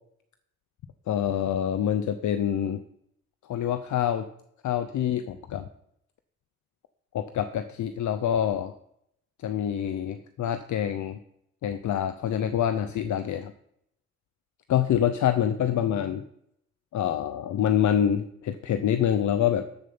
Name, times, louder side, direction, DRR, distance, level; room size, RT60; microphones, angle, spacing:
voice 1, 1.1-2.8 3.4-4.3 4.6-5.7 7.1-8.7 9.4-11.2 11.6-13.5 14.7-16.2 16.9-19.7, left 9 dB, 80° left, 10 dB, 0.7 m, -26 dB
12.5 x 7.1 x 5.5 m, 0.73 s
cardioid pair, 70°, 29 cm